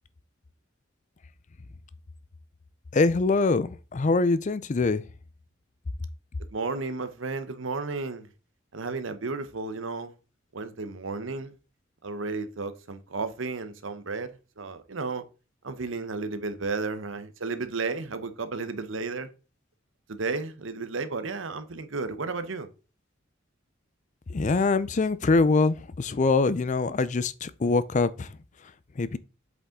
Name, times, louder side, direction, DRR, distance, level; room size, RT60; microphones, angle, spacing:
voice 1, 2.9-5.0 24.3-28.3 29.0-29.2, left 3 dB, 40° left, 0.5 m, -24 dB
voice 2, 6.5-8.3 8.7-10.1 10.5-11.5 12.0-14.3 14.6-15.2 15.6-19.3 20.1-22.7, right 3 dB, 75° right, 0.9 m, -33 dB
8.0 x 5.2 x 3.7 m
head